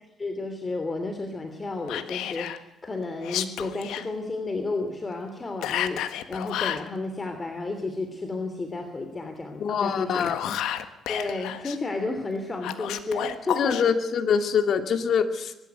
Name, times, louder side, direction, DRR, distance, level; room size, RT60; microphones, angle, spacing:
voice 1, 0.2-10.3 11.1-13.8, left 3 dB, 30° left, 6 dB, 3.0 m, -32 dB
Whispering, 1.9-2.6 3.2-4.1 5.6-6.9 9.9-11.8 12.6-13.8, left 11 dB, 85° left, 1.6 m, -31 dB
voice 2, 9.6-10.6 13.6-15.5, left 6 dB, 60° left, 8 dB, 2.5 m, -24 dB
23.0 x 13.0 x 9.4 m, 0.97 s
cardioid pair, 90°, 0 cm